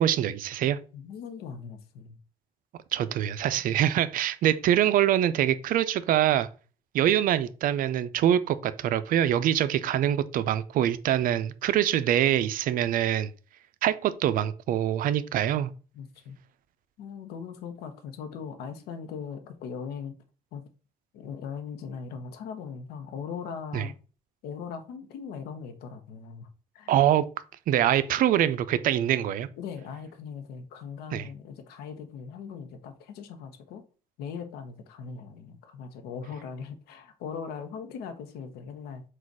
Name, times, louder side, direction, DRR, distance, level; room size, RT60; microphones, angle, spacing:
voice 1, 0.0-0.8 2.9-6.5 6.9-13.3 13.8-15.7 23.7-23.9 26.9-27.2 27.7-29.5 31.1-31.3, right 11 dB, 60° right, 0.4 m, -24 dB
voice 2, 0.9-2.2 3.7-3.8 15.9-16.4 17.0-20.1 20.5-20.6 21.1-23.9 24.4-26.5 26.7-26.9 29.6-33.8 34.2-39.0, left 6 dB, 80° left, 0.8 m, -39 dB
4.0 x 2.4 x 4.6 m
cardioid pair, 90°, 16 cm